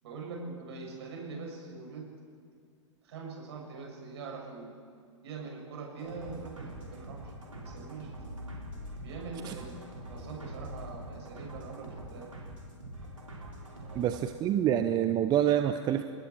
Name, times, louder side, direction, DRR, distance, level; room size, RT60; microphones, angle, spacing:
voice 1, 0.0-2.1 3.0-4.8 5.2-8.1 9.0-12.3 13.8-14.1, right 4 dB, 55° right, -1 dB, 7.4 m, -43 dB
sound 1, 6.0-14.2, equal, 85° right, 5.2 m, -44 dB
voice 2, 13.9-16.0, right 10 dB, 25° right, 9 dB, 0.8 m, -27 dB
29.5 x 20.0 x 4.8 m, 2.2 s
figure-of-eight pair, 105°, 16 cm